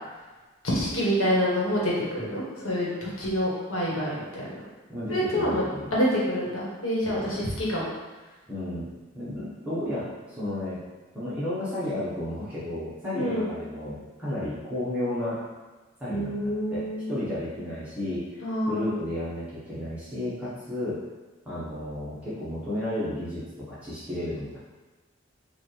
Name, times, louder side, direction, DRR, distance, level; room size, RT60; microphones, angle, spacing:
voice 1, 0.6-4.5 5.1-5.6 5.9-7.9 13.1-13.5 16.1-17.1 18.4-18.9, equal, 90° left, -5 dB, 1.3 m, -27 dB
voice 2, 4.9-5.9 7.1-7.4 8.5-8.9 9.1-10.8 11.1-15.4 16.0-21.0 21.4-24.6, left 1 dB, 5° right, -12 dB, 0.9 m, -33 dB
4.9 x 2.4 x 3.1 m, 1.2 s
head